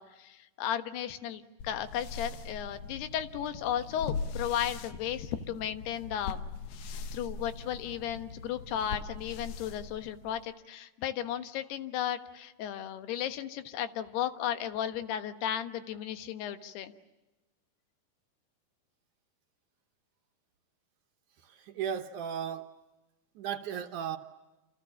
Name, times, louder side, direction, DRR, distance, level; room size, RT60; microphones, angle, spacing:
voice 1, 0.0-6.5 6.9-16.9, left 10 dB, 90° left, 10 dB, 3.4 m, -35 dB
sound 1, 1.6-10.5, left 5 dB, 70° left, 1.7 m, -41 dB
voice 2, 21.4-22.7 23.4-24.2, right 8 dB, 65° right, 6 dB, 2.2 m, -35 dB
28.5 x 28.0 x 7.2 m, 1.1 s
omnidirectional pair, 4.5 m